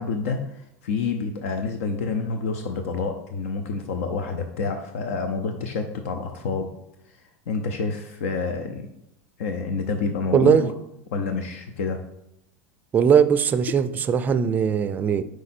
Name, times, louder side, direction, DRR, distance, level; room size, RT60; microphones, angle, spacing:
voice 1, 0.0-6.7 7.1-7.2 7.5-8.9 9.4-10.7 11.1-12.1 13.7-13.8, left 4 dB, 80° left, 0.6 m, -28 dB
voice 2, 10.3-10.7 12.9-15.2, right 7 dB, 25° right, 0.3 m, -19 dB
4.9 x 4.7 x 4.3 m
supercardioid pair, 130°, 7 cm